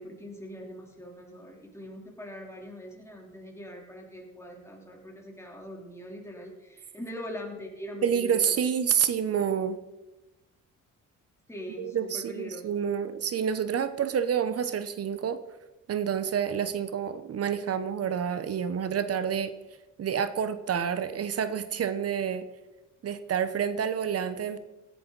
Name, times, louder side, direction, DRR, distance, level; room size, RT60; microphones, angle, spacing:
voice 1, 0.0-8.4 11.5-12.8, equal, 10° left, -1 dB, 3.5 m, -42 dB
voice 2, 8.0-9.8 11.8-15.4 15.9-19.5 20.0-22.4 23.0-24.6, right 8 dB, 50° right, 12 dB, 1.0 m, -28 dB
17.0 x 11.0 x 4.1 m, 1.0 s
cardioid pair, 90°, 30 cm